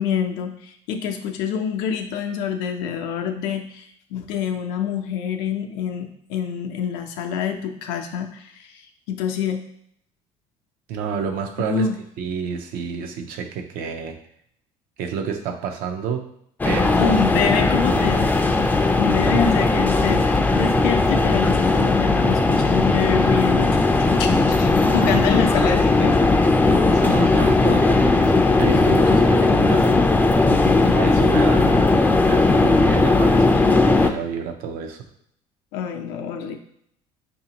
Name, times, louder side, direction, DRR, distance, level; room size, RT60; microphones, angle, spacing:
voice 1, 0.0-8.8 9.1-9.6 11.6-12.0 17.0-18.3 19.0-23.8 24.2-26.3 30.5-30.8 35.7-36.6, left 7 dB, 85° left, 4 dB, 0.6 m, -26 dB
voice 2, 10.9-11.9 12.2-14.2 15.0-16.3 16.6-17.2 17.9-18.1 19.2-19.4 24.9-25.2 26.6-30.0 30.8-31.9 32.2-35.1, right 6 dB, 70° right, 5 dB, 0.6 m, -29 dB
sound 1, 16.6-34.1, left 3 dB, 10° left, 0.4 m, -17 dB
4.9 x 2.6 x 2.8 m, 0.70 s
supercardioid pair, 90°, 15 cm